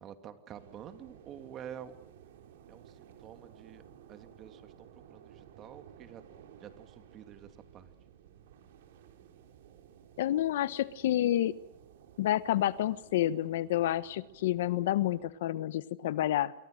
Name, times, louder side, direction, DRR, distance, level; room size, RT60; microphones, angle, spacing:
voice 1, 0.0-1.9 2.7-3.8 4.1-6.2 6.6-7.9, right 9 dB, 30° right, 9 dB, 2.6 m, -48 dB
sound 1, 0.5-15.3, right 9 dB, 70° right, 4.2 m, -56 dB
voice 2, 10.2-11.5 12.2-16.5, left 13 dB, 70° left, 16 dB, 1.2 m, -29 dB
28.0 x 23.0 x 6.6 m, 0.82 s
supercardioid pair, 145°, 0 cm